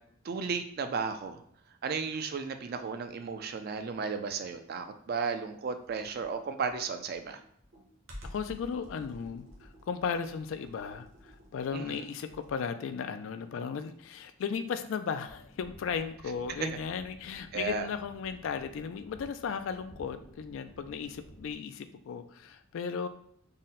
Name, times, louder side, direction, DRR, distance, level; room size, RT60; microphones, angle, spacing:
voice 1, 0.2-1.4 1.8-7.4 11.7-12.0 16.6-16.7 17.5-17.9, right 5 dB, 45° right, 8 dB, 0.3 m, -34 dB
Computer keyboard, 5.8-12.7, equal, 65° right, 0.9 m, -51 dB
voice 2, 8.3-23.1, left 6 dB, 65° left, 11 dB, 0.3 m, -36 dB
sound 1, 15.2-21.5, equal, 85° left, 0.8 m, -54 dB
3.7 x 2.1 x 4.0 m, 0.68 s
head